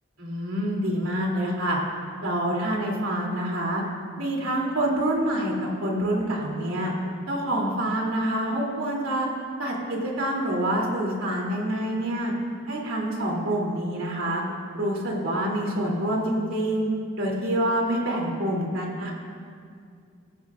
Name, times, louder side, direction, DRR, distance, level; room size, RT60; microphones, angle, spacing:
voice 1, 0.2-1.8 2.2-3.8 4.2-6.9 7.3-9.3 9.6-12.3 12.7-14.4 14.7-16.9 17.1-19.1, right 1 dB, 75° right, -2 dB, 3.0 m, -26 dB
18.0 x 14.5 x 2.5 m, 2.2 s
head